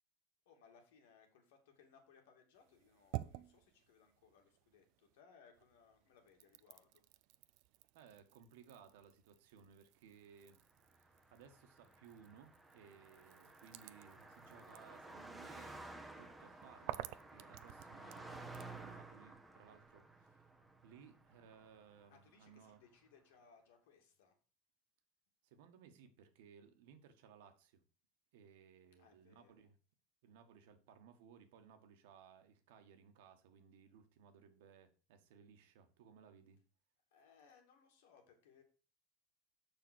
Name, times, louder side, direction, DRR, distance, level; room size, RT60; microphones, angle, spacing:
voice 1, 0.4-7.0 22.1-24.3 29.0-29.7 37.1-38.6, left 6 dB, 85° left, 2.7 m, -67 dB
sound 1, 2.5-5.2 5.5-18.8, right 17 dB, 65° right, 0.5 m, -53 dB
voice 2, 7.9-10.6 11.0-20.4 20.8-22.8 25.4-27.8 28.3-29.8 30.2-36.6, right 7 dB, 80° right, 1.7 m, -62 dB
Car passing by, 10.9-22.4, right 2 dB, 5° right, 1.2 m, -55 dB
6.8 x 5.8 x 6.4 m
supercardioid pair, 130°, 0 cm